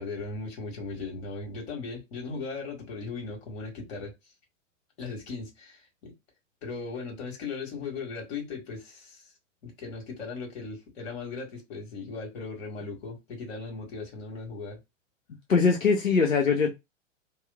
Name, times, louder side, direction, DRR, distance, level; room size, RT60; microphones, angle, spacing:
voice 1, 0.0-4.1 5.0-6.1 6.6-9.2 9.6-14.8, left 4 dB, 55° left, 1.5 m, -38 dB
voice 2, 15.5-16.7, left 5 dB, 90° left, 0.6 m, -22 dB
2.8 x 2.0 x 2.2 m
figure-of-eight pair, 100°, 39 cm